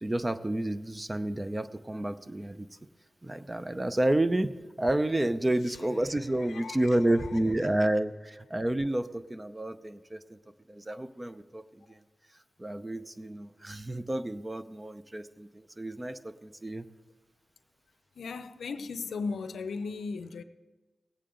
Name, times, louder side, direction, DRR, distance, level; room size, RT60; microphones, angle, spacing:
voice 1, 0.0-2.7 3.2-10.4 10.7-12.0 12.6-16.8, right 1 dB, 25° right, 0.6 m, -30 dB
voice 2, 6.5-6.9 18.2-20.4, left 4 dB, 85° left, 0.6 m, -36 dB
19.0 x 8.4 x 3.8 m
cardioid pair, 50°, 0 cm